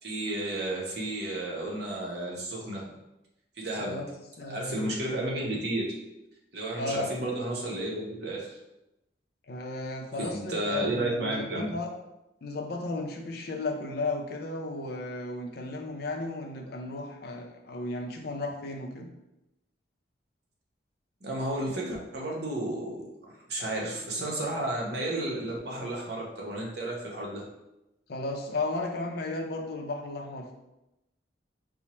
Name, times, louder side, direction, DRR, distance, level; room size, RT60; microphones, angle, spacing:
voice 1, 0.0-2.8 3.6-4.0 4.4-6.0 6.5-8.6 10.2-11.7 21.2-27.4, right 1 dB, 60° right, -2 dB, 0.8 m, -32 dB
voice 2, 3.8-4.1 4.4-4.9 6.8-7.1 9.5-11.9 12.4-19.1 28.1-30.5, left 2 dB, 55° left, 2 dB, 0.4 m, -34 dB
4.3 x 2.1 x 2.9 m, 0.92 s
head